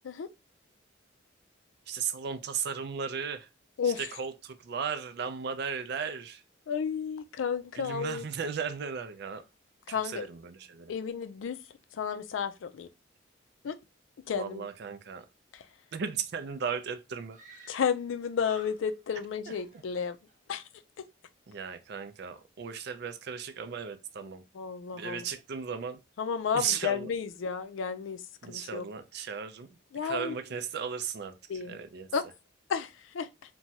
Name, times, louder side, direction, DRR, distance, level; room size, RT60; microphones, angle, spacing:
voice 1, 1.9-3.5 3.8-6.4 7.7-9.4 9.9-10.9 14.4-15.3 15.9-17.7 19.5-19.6 21.5-24.4 24.9-26.0 26.5-27.1 28.4-32.1, right 6 dB, 55° right, 0.4 m, -36 dB
voice 2, 6.7-8.2 9.9-10.3 10.9-11.6 11.9-12.9 13.6-13.8 14.3-14.7 17.7-20.2 20.5-20.6 24.6-25.2 26.2-28.8 29.9-30.4 31.5-31.8 32.1-32.2 32.7-33.3, left 6 dB, 75° left, 0.4 m, -32 dB
Screaming, 17.3-18.1 18.4-19.2 19.5-20.4, right 2 dB, 40° right, 0.9 m, -54 dB
2.9 x 2.2 x 2.7 m
head